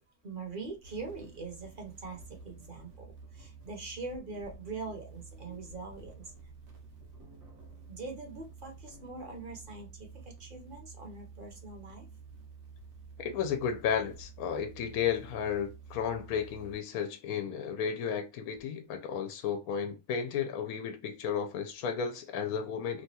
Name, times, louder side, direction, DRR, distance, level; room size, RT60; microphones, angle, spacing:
voice 1, 0.2-6.3 7.9-12.1, right 3 dB, 40° right, 0.9 m, -43 dB
sound 1, 0.8-16.7, right 5 dB, 75° right, 1.2 m, -51 dB
voice 2, 13.2-23.0, left 7 dB, 80° left, 1.0 m, -33 dB
3.1 x 2.2 x 2.7 m
omnidirectional pair, 1.5 m